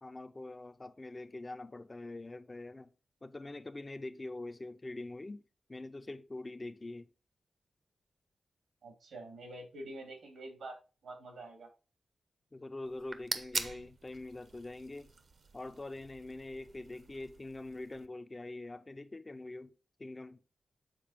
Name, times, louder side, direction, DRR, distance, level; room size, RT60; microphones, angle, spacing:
voice 1, 0.0-2.9 3.2-5.4 5.7-7.1 12.5-15.1 15.5-19.7 20.0-20.4, left 2 dB, 25° left, 0.4 m, -44 dB
voice 2, 8.8-10.8 11.0-11.7, right 2 dB, 85° right, 2.9 m, -46 dB
sound 1, 12.9-18.1, right 4 dB, 55° right, 0.8 m, -43 dB
7.5 x 4.3 x 4.9 m
wide cardioid pair, 150°, 0 cm